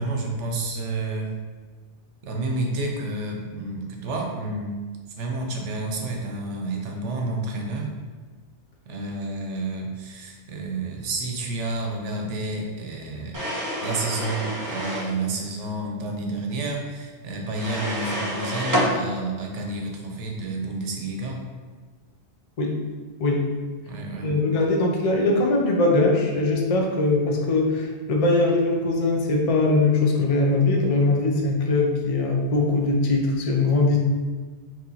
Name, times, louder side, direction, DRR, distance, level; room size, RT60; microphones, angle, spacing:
voice 1, 0.0-1.3 2.2-4.8 5.2-7.9 8.9-13.4 13.8-21.4 23.9-24.4, right 2 dB, 90° right, 1 dB, 1.0 m, -30 dB
sound 1, 13.3-15.1 17.5-18.9, equal, 20° right, 0.6 m, -28 dB
voice 2, 24.2-34.0, left 2 dB, 45° left, 1 dB, 0.5 m, -21 dB
3.1 x 2.9 x 3.8 m, 1.4 s
omnidirectional pair, 1.2 m